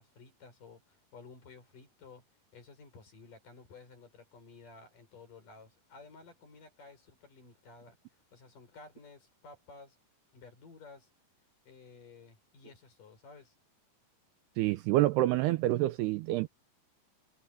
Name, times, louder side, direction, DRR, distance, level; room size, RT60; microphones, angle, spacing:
voice 1, 0.0-2.3 2.5-8.0 8.3-10.0 10.3-11.1 11.7-13.5, left 4 dB, 45° left, 6.9 m, -54 dB
voice 2, 14.6-16.5, right 16 dB, 85° right, 2.5 m, -27 dB
omnidirectional pair, 5.2 m